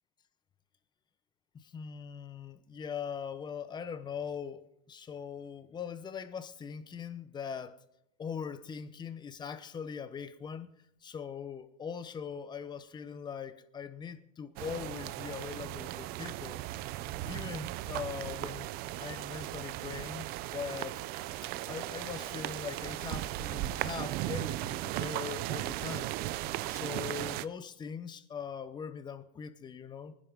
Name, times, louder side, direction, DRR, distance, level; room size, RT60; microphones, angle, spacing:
voice 1, 1.5-7.8 8.2-10.7 11.0-16.9 17.2-18.7 19.0-21.0 21.7-26.4 26.7-30.1, left 7 dB, 20° left, 0.9 m, -41 dB
sound 1, 14.6-27.5, right 15 dB, 50° right, 0.5 m, -37 dB
23.5 x 10.5 x 3.6 m
supercardioid pair, 140°, 20 cm